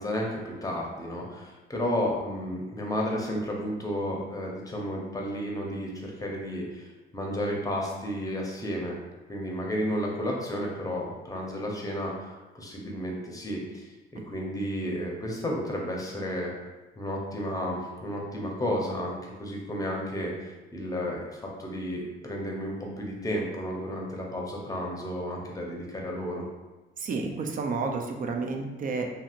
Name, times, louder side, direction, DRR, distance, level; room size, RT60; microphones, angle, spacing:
voice 1, 0.0-8.9 9.3-13.9 14.3-16.5 17.0-26.5, equal, 15° left, -1 dB, 0.7 m, -32 dB
voice 2, 27.0-29.0, right 4 dB, 45° right, 3 dB, 0.4 m, -30 dB
2.8 x 2.8 x 2.4 m, 1.1 s
cardioid pair, 90°, 20 cm